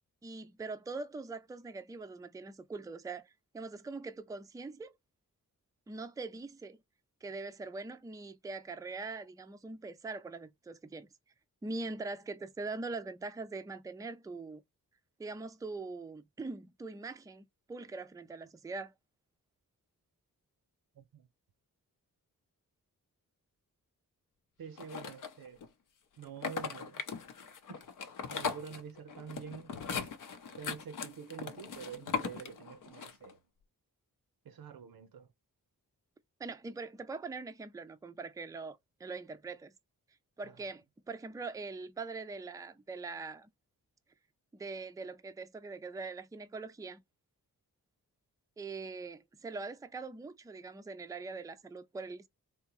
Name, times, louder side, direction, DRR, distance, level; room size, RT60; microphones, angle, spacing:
voice 1, 0.2-4.9 5.9-6.8 7.2-11.1 11.6-14.6 15.2-18.9 36.4-39.7 40.4-43.5 44.5-47.0 48.6-52.3, right 3 dB, 10° right, 0.4 m, -42 dB
voice 2, 21.0-21.3 24.6-25.6 26.2-27.0 27.7-27.8 28.3-30.1 30.5-33.4 34.4-35.3 40.4-40.6, right 7 dB, 80° right, 0.7 m, -47 dB
sound 1, 24.8-25.7 26.2-33.3, left 6 dB, 60° left, 0.6 m, -39 dB
3.5 x 2.8 x 3.0 m
cardioid pair, 65°, 35 cm